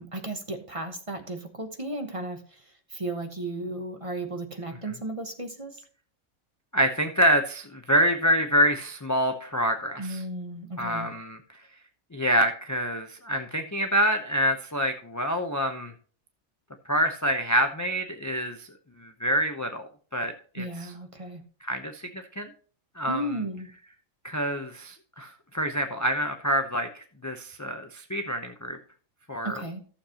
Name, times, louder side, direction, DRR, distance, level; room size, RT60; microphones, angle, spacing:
voice 1, 0.0-2.6 2.9-5.8 10.0-11.1 20.6-21.4 23.1-23.7 29.4-29.8, right 1 dB, 25° right, 5 dB, 1.0 m, -34 dB
voice 2, 6.7-10.2 10.8-11.4 12.1-15.9 16.9-18.7 19.0-20.9 21.6-22.5 23.0-23.4 24.2-28.8 29.3-29.6, equal, 20° left, 6 dB, 0.5 m, -26 dB
14.5 x 7.2 x 2.9 m, 0.43 s
omnidirectional pair, 1.4 m